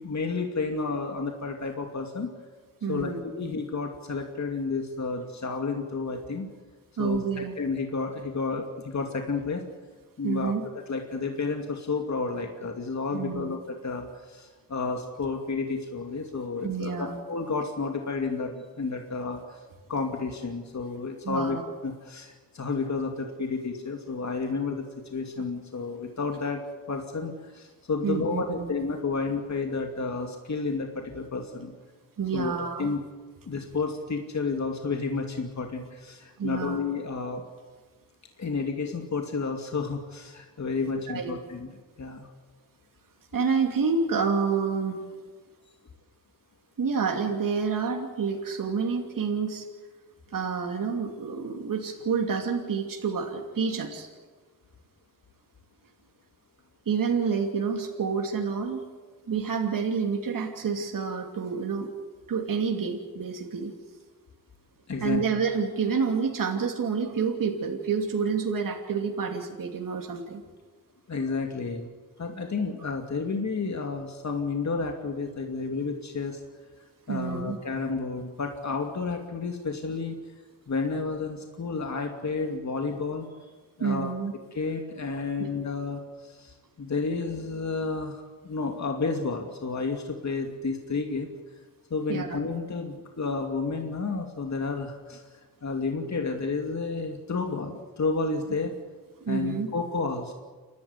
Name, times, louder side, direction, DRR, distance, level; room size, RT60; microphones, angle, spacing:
voice 1, 0.0-2.3 2.9-6.5 7.0-9.6 10.2-19.6 19.9-21.6 21.8-31.7 32.3-33.0 33.5-37.4 38.4-41.7 42.0-42.3 64.9-65.2 71.1-71.9 72.2-76.4 77.1-80.2 80.7-83.3 83.8-84.1 84.5-91.3 91.9-98.7 99.3-100.3, left 4 dB, 50° left, 3 dB, 2.5 m, -31 dB
voice 2, 2.8-3.2 7.0-7.6 10.2-10.6 13.1-13.5 16.6-17.2 21.2-21.6 28.0-28.7 32.2-32.9 36.4-36.8 41.1-41.4 43.3-45.0 46.8-49.6 50.3-54.1 56.9-58.9 59.3-61.9 62.3-63.7 65.0-70.4 77.1-77.6 83.8-84.3 85.4-85.5 92.1-92.4 99.2-99.7, right 5 dB, 65° right, 1 dB, 2.8 m, -28 dB
28.5 x 13.0 x 9.6 m, 1.4 s
cardioid pair, 70°, 35 cm